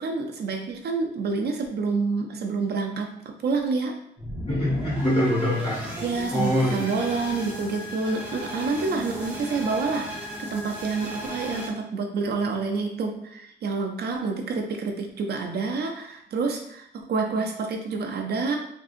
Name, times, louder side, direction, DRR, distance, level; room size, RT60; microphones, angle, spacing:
voice 1, 0.0-3.1 3.4-4.0 6.0-10.0 10.4-18.6, right 4 dB, 60° right, 2 dB, 0.5 m, -28 dB
sound 1, 4.2-11.7, equal, 10° right, 0.8 m, -35 dB
voice 2, 4.5-6.0 6.3-7.1, left 1 dB, 30° left, -6 dB, 1.4 m, -24 dB
3.6 x 2.6 x 2.5 m, 0.73 s
wide cardioid pair, 140°, 19 cm